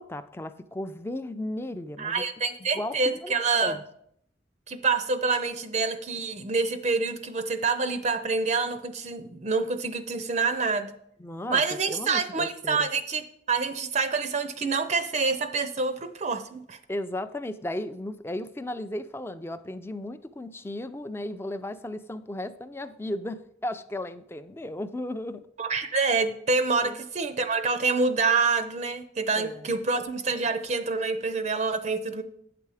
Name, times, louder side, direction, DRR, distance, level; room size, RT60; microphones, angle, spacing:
voice 1, 0.0-2.2 2.6-3.3 3.6-3.8 11.2-11.6 11.9-12.9 16.9-25.4 26.8-27.0 29.3-29.7, left 1 dB, 15° left, 11 dB, 0.4 m, -35 dB
voice 2, 2.0-3.8 4.7-10.9 11.5-13.2 13.5-16.8 25.6-32.2, right 4 dB, 40° right, 10 dB, 0.5 m, -27 dB
8.8 x 6.9 x 4.8 m, 0.70 s
head